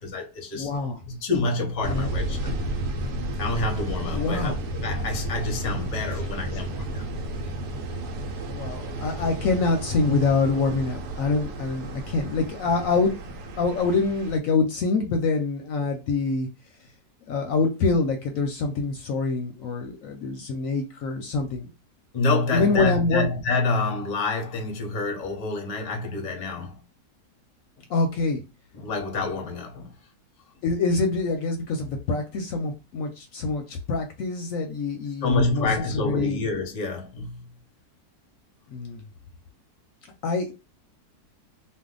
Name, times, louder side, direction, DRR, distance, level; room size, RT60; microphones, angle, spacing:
voice 1, 0.0-0.7 1.1-2.5 3.4-7.1 22.1-26.8 28.7-29.9 35.2-37.5, left 3 dB, 40° left, 0.6 m, -27 dB
voice 2, 0.5-1.0 1.8-2.4 4.1-4.6 8.4-16.5 17.3-21.7 22.5-23.3 27.9-28.4 30.6-35.7 35.9-36.4 38.7-39.0 40.2-40.5, left 3 dB, 70° left, 0.9 m, -25 dB
sound 1, 1.8-14.4, right 1 dB, 85° right, 1.1 m, -32 dB
2.7 x 2.2 x 3.6 m
omnidirectional pair, 1.7 m